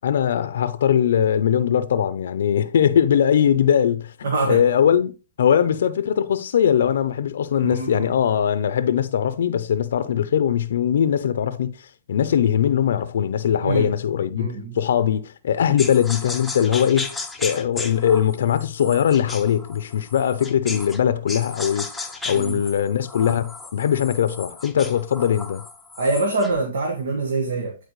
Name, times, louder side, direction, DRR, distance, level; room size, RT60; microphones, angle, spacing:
voice 1, 0.0-4.1 4.4-5.1 5.4-11.7 12.1-14.5 14.8-21.9 22.3-25.6, left 9 dB, 70° left, 0.6 m, -20 dB
voice 2, 4.2-4.6 7.6-8.1 13.6-13.9 14.4-14.8 22.3-22.6 26.0-27.8, right 3 dB, 75° right, 1.5 m, -24 dB
sound 1, 15.8-21.0 21.3-26.6, left 3 dB, 5° left, 0.7 m, -35 dB
10.0 x 4.4 x 3.1 m
hypercardioid pair, 145°, 0 cm